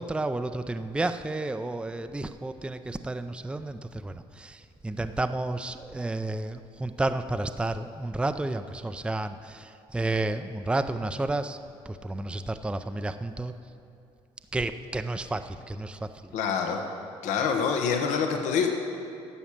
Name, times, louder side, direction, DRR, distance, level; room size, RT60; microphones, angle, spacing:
voice 1, 0.0-11.6 11.9-13.5 14.5-16.1, right 2 dB, 10° right, 9 dB, 0.5 m, -31 dB
voice 2, 16.3-16.8 17.2-18.7, left 6 dB, 80° left, 4 dB, 1.1 m, -26 dB
11.0 x 7.1 x 7.3 m, 2.6 s
supercardioid pair, 80°, 12 cm